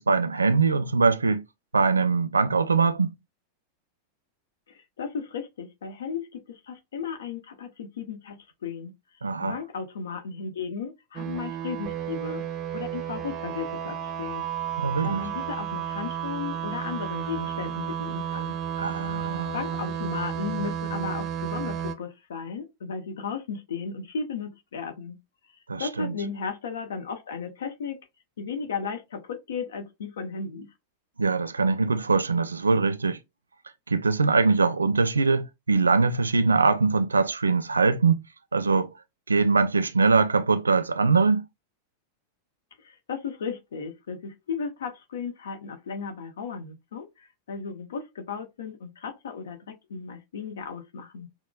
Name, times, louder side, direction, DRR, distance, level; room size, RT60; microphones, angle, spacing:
voice 1, 0.0-1.4 1.7-3.2 9.2-9.6 14.8-15.2 18.8-19.6 25.7-26.2 31.2-33.2 33.9-38.2 38.5-38.9 39.3-41.4, right 4 dB, 75° right, 0.5 m, -22 dB
voice 2, 4.7-8.9 9.4-14.4 15.0-18.6 19.5-25.2 25.8-28.0 28.4-30.7 42.8-51.3, left 5 dB, 65° left, 0.8 m, -35 dB
sound 1, 11.2-22.0, right 9 dB, 30° right, 0.6 m, -32 dB
5.8 x 2.1 x 2.3 m
figure-of-eight pair, 90°, 0 cm